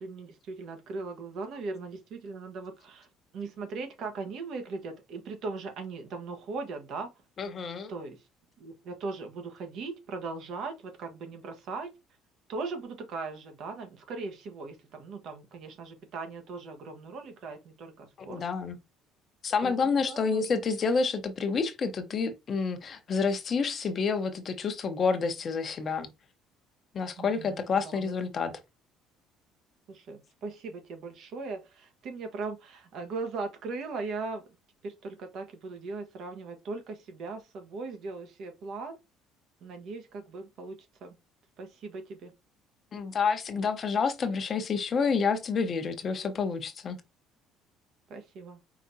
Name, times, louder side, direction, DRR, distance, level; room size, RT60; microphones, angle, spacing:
voice 1, 0.0-3.1 3.3-7.1 7.9-8.2 8.6-11.9 12.5-18.4 19.6-20.6 27.2-28.1 29.9-34.4 34.8-39.0 39.6-41.1 41.6-42.3 48.1-48.6, right 4 dB, 60° right, 1.2 m, -39 dB
voice 2, 7.4-7.9 18.2-18.8 19.4-26.1 26.9-28.5 42.9-47.0, left 5 dB, 40° left, 0.8 m, -29 dB
4.9 x 3.5 x 2.7 m
cardioid pair, 120°, 0 cm